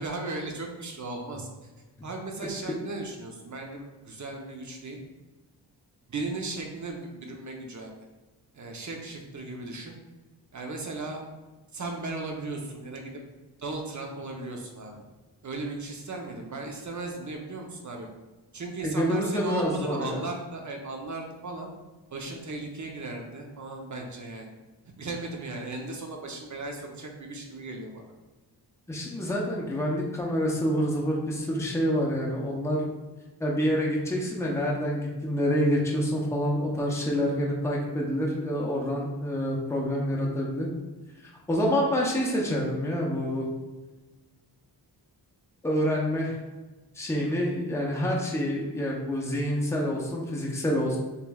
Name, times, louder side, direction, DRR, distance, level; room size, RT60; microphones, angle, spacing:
voice 1, 0.0-1.5 2.0-5.0 6.1-7.9 8.5-9.9 10.5-11.2 11.7-13.1 13.6-15.0 15.4-18.1 18.5-21.7 22.1-24.5 24.8-28.0, right 2 dB, 45° right, 1 dB, 0.7 m, -36 dB
voice 2, 18.8-20.2 28.9-32.9 33.4-40.7 41.5-43.5 45.6-46.4 46.9-51.0, equal, 5° left, -3 dB, 0.7 m, -27 dB
6.8 x 3.1 x 2.3 m, 1.2 s
wide cardioid pair, 165°, 41 cm